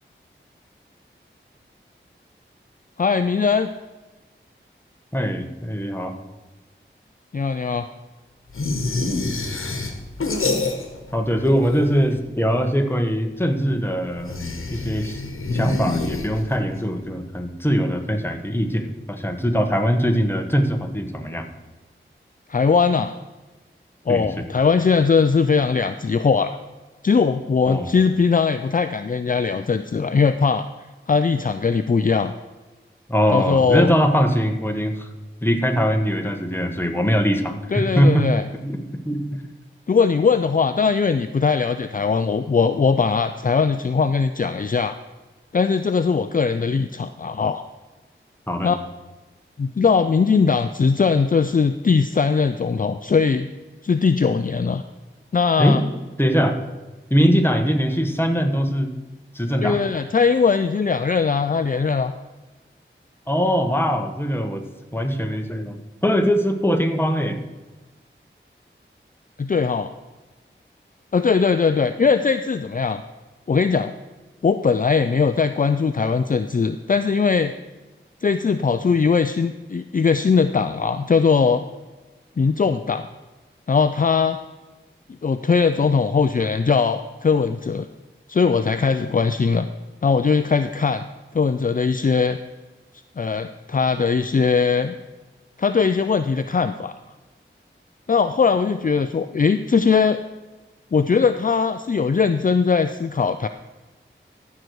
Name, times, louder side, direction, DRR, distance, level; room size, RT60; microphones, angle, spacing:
voice 1, 3.0-3.7 7.3-7.9 22.5-23.1 24.1-26.6 27.0-30.7 31.1-32.3 33.3-33.9 37.7-38.4 39.9-45.0 45.5-47.6 48.6-48.8 49.6-53.5 53.8-54.8 55.3-55.8 59.6-62.1 69.4-69.9 71.1-73.0 73.5-73.9 74.4-77.5 78.2-81.6 82.4-83.1 83.7-84.4 85.2-87.9 88.3-89.7 90.0-91.0 91.3-92.4 93.2-94.9 95.6-96.9 98.1-100.2 100.9-103.5, left 5 dB, 40° left, 10 dB, 0.4 m, -20 dB
voice 2, 5.1-6.2 11.1-14.4 14.7-15.2 15.5-21.5 24.1-24.4 27.7-27.9 33.1-35.1 35.4-38.3 38.6-38.8 39.0-39.4 48.5-48.7 55.6-55.8 56.2-56.6 57.1-58.9 59.3-59.9 63.3-64.6 64.9-65.8 66.0-67.4, equal, 10° left, 5 dB, 1.3 m, -21 dB
sound 1, 8.5-11.1 11.4-12.2 14.2-16.7, left 3 dB, 90° left, 1.1 m, -27 dB
14.0 x 6.6 x 4.7 m, 1.2 s
wide cardioid pair, 45°, 21 cm